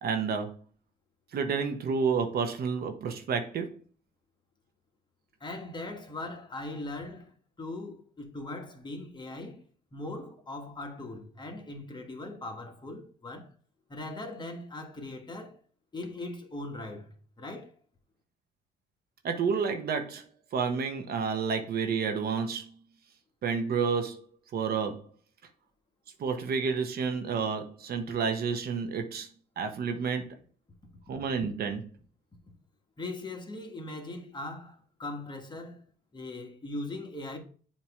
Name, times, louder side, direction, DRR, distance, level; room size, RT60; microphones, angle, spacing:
voice 1, 0.0-0.6 1.3-3.7 19.2-20.2 20.5-22.7 23.4-25.1 26.2-29.3 29.6-30.3 31.1-31.8, right 5 dB, 60° right, 1.1 m, -30 dB
voice 2, 5.4-9.6 9.9-13.5 13.9-15.6 15.9-17.7 33.0-35.8 36.1-37.4, left 2 dB, 25° left, 1.4 m, -40 dB
7.4 x 2.9 x 4.9 m
cardioid pair, 85°, 18 cm